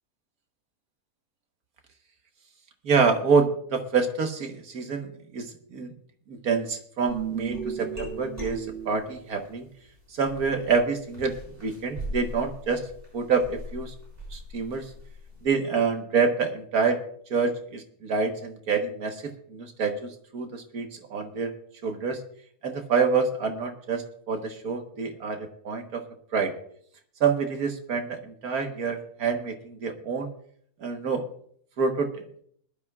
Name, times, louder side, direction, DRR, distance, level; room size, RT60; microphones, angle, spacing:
voice 1, 2.8-5.9 6.3-9.7 10.1-12.8 13.1-13.9 14.3-14.9 15.4-17.0 17.3-21.5 21.8-22.2 22.6-26.0 26.3-26.5 27.2-30.3 30.8-31.2 31.8-32.4, right 5 dB, 65° right, 5 dB, 1.8 m, -27 dB
sound 1, 7.1-9.5 10.2-15.4, right 4 dB, 35° right, 6.3 m, -37 dB
20.5 x 12.0 x 2.4 m, 0.63 s
omnidirectional pair, 1.7 m